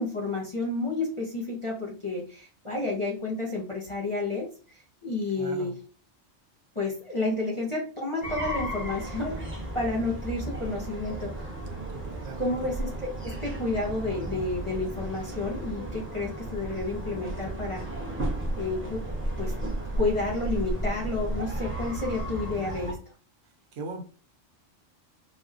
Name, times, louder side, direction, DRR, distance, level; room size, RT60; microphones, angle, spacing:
voice 1, 0.0-4.5 5.0-5.7 6.7-11.5 12.4-17.8 18.5-19.0 19.4-19.5 20.0-23.0, left 3 dB, 30° left, 0.6 m, -31 dB
voice 2, 5.4-5.8 11.9-12.5 23.4-24.0, right 3 dB, 75° right, 1.0 m, -40 dB
sound 1, 8.2-22.9, right 1 dB, 15° right, 0.4 m, -34 dB
4.2 x 2.0 x 2.4 m
omnidirectional pair, 1.3 m